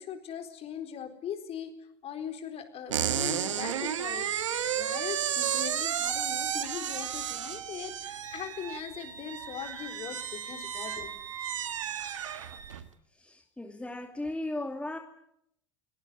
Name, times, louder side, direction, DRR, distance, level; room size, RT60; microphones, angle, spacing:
voice 1, 0.0-1.7 2.0-4.5 4.7-11.1, left 8 dB, 40° left, 7 dB, 4.3 m, -40 dB
sound 1, 2.9-12.9, right 9 dB, 80° right, 1.6 m, -33 dB
Wind instrument woodwind instrument, 8.2-12.8, right 4 dB, 20° right, 2.7 m, -46 dB
voice 2, 13.2-15.0, left 2 dB, 5° left, 4 dB, 2.6 m, -36 dB
22.5 x 18.5 x 9.6 m, 0.76 s
hypercardioid pair, 85°, 16 cm